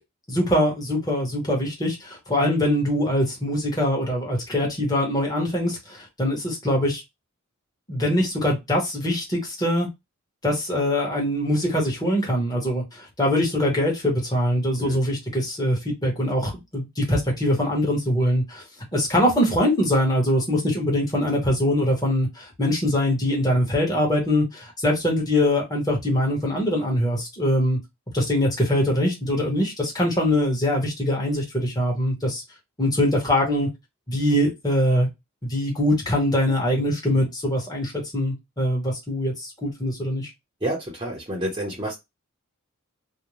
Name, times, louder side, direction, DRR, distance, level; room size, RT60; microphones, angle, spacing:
voice 1, 0.3-7.0 7.9-9.9 10.4-18.6 18.9-27.8 28.1-32.4 32.8-33.7 34.1-35.1 35.4-40.3, left 1 dB, 20° left, -2 dB, 1.0 m, -23 dB
voice 2, 40.6-41.9, right 1 dB, 20° right, -3 dB, 0.7 m, -29 dB
2.5 x 2.1 x 3.0 m, 0.20 s
head